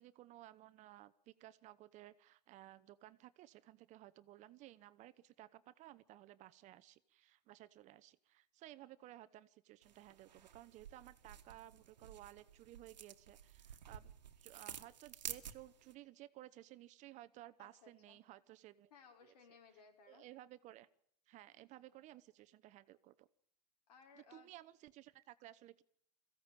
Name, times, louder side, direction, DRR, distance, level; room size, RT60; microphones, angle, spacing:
voice 1, 0.0-14.1 14.4-18.9 19.2-19.3 20.1-20.9 21.3-23.3 24.2-25.8, right 15 dB, 35° right, 15 dB, 0.9 m, -57 dB
sound 1, 9.8-15.9, right 8 dB, 90° right, 1.6 m, -52 dB
voice 2, 17.6-18.2 18.9-20.2 23.9-24.5, left 5 dB, 70° left, 3 dB, 6.0 m, -62 dB
22.5 x 15.5 x 9.0 m, 0.65 s
hypercardioid pair, 125°, 21 cm